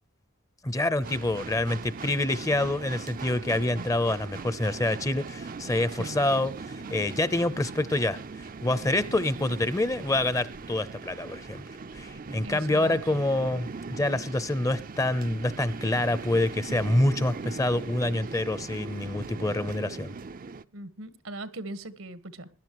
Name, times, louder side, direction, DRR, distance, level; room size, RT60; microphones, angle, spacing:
voice 1, 0.6-8.2 8.6-11.6 11.9-20.1, left 1 dB, 15° left, 0.7 m, -27 dB
sound 1, 1.0-20.6, right 4 dB, 40° right, 0.5 m, -40 dB
voice 2, 12.4-13.2 20.7-22.5, right 2 dB, 80° right, 1.5 m, -40 dB
21.0 x 11.5 x 3.1 m
head